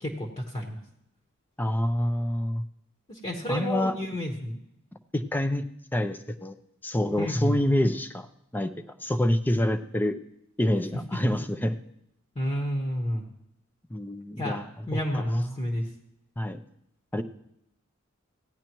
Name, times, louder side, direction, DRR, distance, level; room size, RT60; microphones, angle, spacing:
voice 1, 0.0-0.8 3.1-4.6 7.2-7.6 12.3-13.2 14.4-14.6 14.9-15.8, equal, 30° left, 2 dB, 1.2 m, -30 dB
voice 2, 1.6-2.6 3.5-4.0 5.1-5.6 5.9-6.5 6.8-8.3 8.5-8.7 9.0-10.2 10.6-11.7 13.9-14.7 14.9-15.6 16.4-16.6 17.1-17.2, left 1 dB, 10° left, 8 dB, 0.5 m, -27 dB
16.5 x 10.0 x 3.0 m, 0.77 s
head